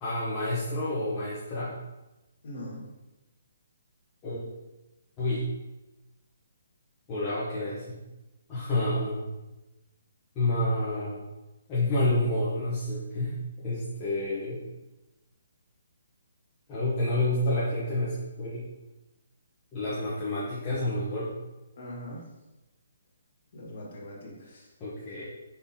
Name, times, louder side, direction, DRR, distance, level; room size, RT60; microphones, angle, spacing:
voice 1, 0.0-1.7 4.2-4.4 5.2-5.5 7.1-8.0 8.5-9.3 10.4-11.3 11.7-13.3 13.6-14.6 16.7-18.7 19.7-21.3 24.8-25.2, left 1 dB, 15° left, -10 dB, 0.7 m, -29 dB
voice 2, 2.4-2.8 21.8-22.2 23.5-24.7, equal, 40° left, -4 dB, 1.5 m, -41 dB
5.2 x 3.7 x 2.7 m, 1.0 s
hypercardioid pair, 180°, 0 cm